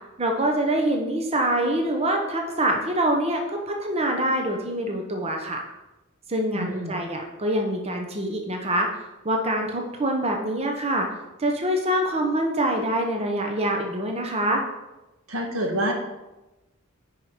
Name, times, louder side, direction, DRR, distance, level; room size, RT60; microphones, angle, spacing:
voice 1, 0.2-5.6 6.3-11.1 11.4-14.6, right 1 dB, 30° right, 2 dB, 0.9 m, -25 dB
voice 2, 6.5-7.0 15.3-15.9, right 1 dB, 85° right, 2 dB, 1.6 m, -27 dB
9.4 x 4.8 x 5.0 m, 1.0 s
head